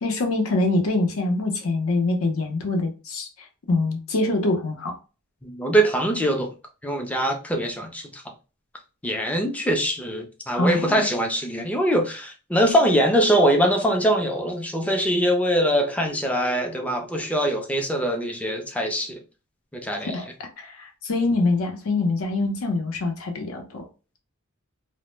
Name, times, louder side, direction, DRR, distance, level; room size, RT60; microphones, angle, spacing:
voice 1, 0.0-3.3 3.7-4.9 10.5-11.1 20.1-20.3 20.6-23.8, left 2 dB, 75° left, 0.6 m, -24 dB
voice 2, 5.4-6.5 6.8-8.2 9.0-19.2 19.7-20.2, equal, 5° left, 0.4 m, -23 dB
2.0 x 2.0 x 3.0 m
head